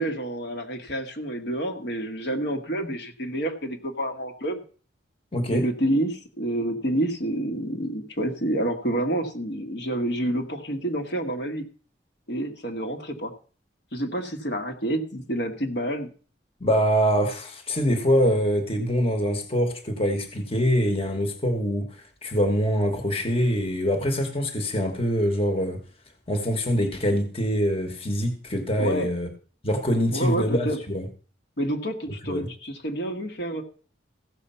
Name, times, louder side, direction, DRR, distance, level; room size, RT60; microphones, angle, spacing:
voice 1, 0.0-4.6 5.5-11.7 12.3-13.3 13.9-16.1 28.8-29.1 30.1-30.8 31.6-33.6, right 1 dB, 60° left, 4 dB, 1.6 m, -28 dB
voice 2, 5.3-5.6 16.6-25.8 26.3-29.3 29.6-31.1 32.3-32.5, equal, 30° left, 6 dB, 1.3 m, -24 dB
15.0 x 6.7 x 5.6 m, 0.41 s
head